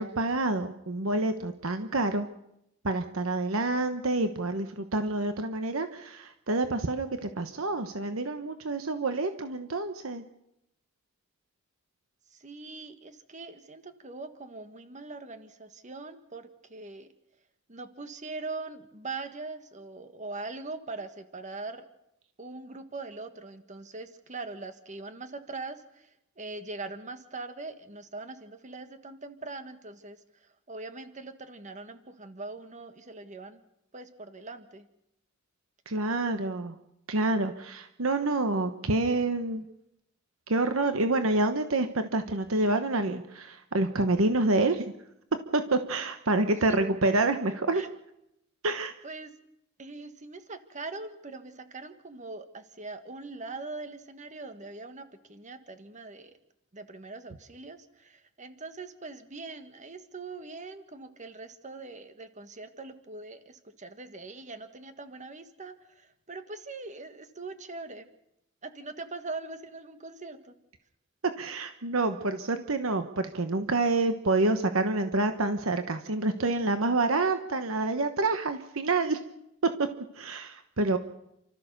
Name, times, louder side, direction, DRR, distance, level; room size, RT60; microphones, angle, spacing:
voice 1, 0.0-2.3 2.8-10.2 35.9-36.7 37.1-39.6 40.5-44.9 45.5-47.8 48.6-48.9 71.4-79.2 80.1-81.0, right 2 dB, 75° right, 8 dB, 1.1 m, -27 dB
voice 2, 12.4-17.1 17.7-21.8 22.4-26.1 26.4-30.2 30.7-33.6 33.9-34.9 46.7-46.8 47.7-47.9 49.0-49.3 49.8-56.3 56.7-68.1 68.6-70.5, right 3 dB, 35° right, 9 dB, 1.6 m, -42 dB
29.0 x 13.5 x 6.8 m, 0.83 s
head